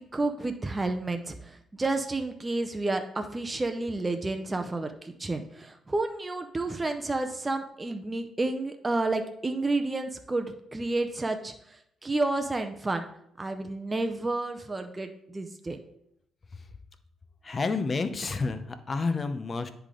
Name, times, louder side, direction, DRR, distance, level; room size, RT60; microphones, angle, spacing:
voice 1, 0.0-13.1 13.4-15.8, right 2 dB, 20° right, 6 dB, 0.6 m, -30 dB
voice 2, 17.4-19.7, left 4 dB, 35° left, 9 dB, 0.7 m, -30 dB
10.0 x 3.4 x 3.8 m, 0.74 s
cardioid pair, 90°, 0 cm